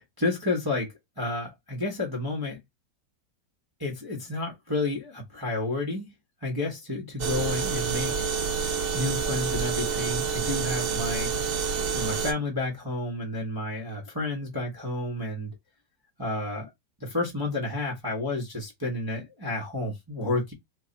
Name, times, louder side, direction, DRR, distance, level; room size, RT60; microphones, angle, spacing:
voice 1, 0.2-2.6 3.8-6.1 6.4-8.3 8.9-11.3 11.9-15.5 16.2-16.7 17.0-20.5, left 2 dB, 20° right, 0.6 m, -30 dB
sound 1, 7.2-12.3, right 6 dB, 75° right, 0.5 m, -28 dB
3.1 x 2.3 x 3.9 m
omnidirectional pair, 1.9 m